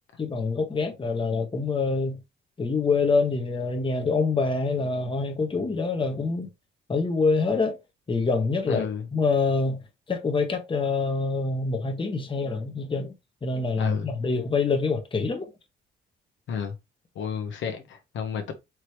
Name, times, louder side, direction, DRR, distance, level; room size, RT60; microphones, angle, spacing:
voice 1, 0.2-2.2 2.6-6.5 6.9-7.8 8.1-9.8 10.1-13.1 13.4-15.5, left 4 dB, 25° left, 1.1 m, -26 dB
voice 2, 8.7-9.0 13.8-14.1 16.5-16.7 17.1-18.5, left 7 dB, 75° left, 1.0 m, -31 dB
4.7 x 3.1 x 3.1 m
cardioid pair, 90°, 20 cm